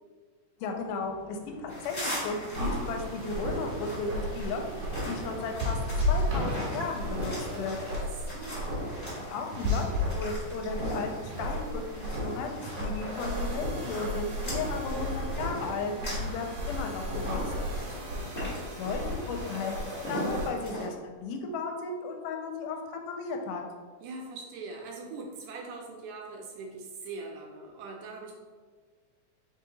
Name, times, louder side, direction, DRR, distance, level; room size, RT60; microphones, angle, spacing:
voice 1, 0.6-5.8 6.1-7.8 9.3-17.4 18.8-21.0 21.2-22.8 23.1-23.6, left 4 dB, 85° left, 3 dB, 2.1 m, -35 dB
sound 1, 0.6-20.3, equal, 65° left, 1.1 m, -52 dB
sound 2, 1.7-20.9, equal, 45° left, 0.6 m, -42 dB
sound 3, 2.5-20.5, left 1 dB, 60° right, 1.6 m, -33 dB
voice 2, 7.9-8.7 17.6-18.3 24.0-28.3, right 3 dB, 80° right, 0 dB, 1.8 m, -42 dB
4.8 x 2.8 x 3.9 m, 1.5 s
omnidirectional pair, 3.7 m